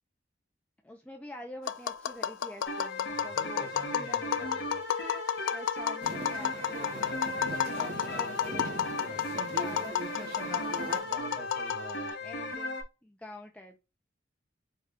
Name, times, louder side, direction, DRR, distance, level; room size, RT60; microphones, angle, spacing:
voice 1, 0.8-4.3 5.5-7.1 7.6-8.9 9.6-10.0 10.6-11.1 11.8-12.8 13.0-13.8, left 1 dB, 5° left, 0.4 m, -47 dB
Tap, 1.7-12.1, left 9 dB, 85° left, 0.3 m, -33 dB
sound 1, 2.6-12.8, left 1 dB, 65° left, 0.9 m, -37 dB
voice 2, 3.1-4.8 6.8-9.8 11.0-12.5, equal, 50° left, 1.3 m, -48 dB
sound 2, 6.0-11.0, right 2 dB, 50° right, 1.0 m, -41 dB
4.5 x 2.2 x 3.5 m
head